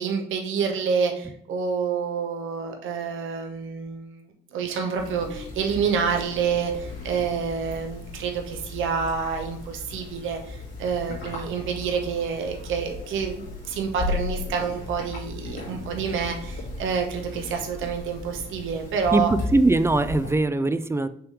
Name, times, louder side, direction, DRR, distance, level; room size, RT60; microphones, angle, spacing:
voice 1, 0.0-4.2 4.5-19.3, right 6 dB, 85° right, 3 dB, 1.0 m, -28 dB
sound 1, 5.0-20.3, left 2 dB, 85° left, 2.2 m, -36 dB
voice 2, 19.1-21.1, right 2 dB, 15° right, 12 dB, 0.4 m, -21 dB
5.9 x 3.4 x 4.9 m, 0.68 s
cardioid pair, 90°, 20 cm